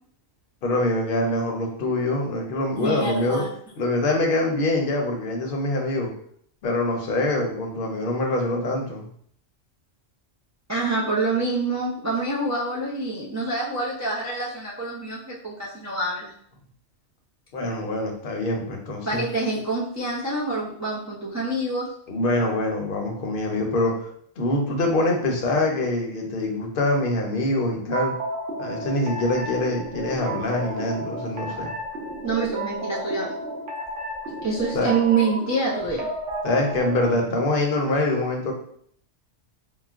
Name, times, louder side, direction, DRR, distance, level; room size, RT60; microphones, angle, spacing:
voice 1, 0.6-3.4 3.8-6.1 6.6-9.1 17.5-19.2 22.1-24.1 24.4-28.1 28.6-31.7 34.7-34.9 36.4-38.5, left 2 dB, 55° left, 1 dB, 0.8 m, -24 dB
voice 2, 2.8-3.5 10.7-16.3 19.1-21.9 32.2-33.3 34.4-36.1, right 3 dB, 25° right, -6 dB, 0.4 m, -26 dB
sound 1, 27.9-37.2, right 1 dB, 90° right, 1.0 m, -32 dB
3.8 x 2.1 x 2.4 m, 0.63 s
omnidirectional pair, 1.2 m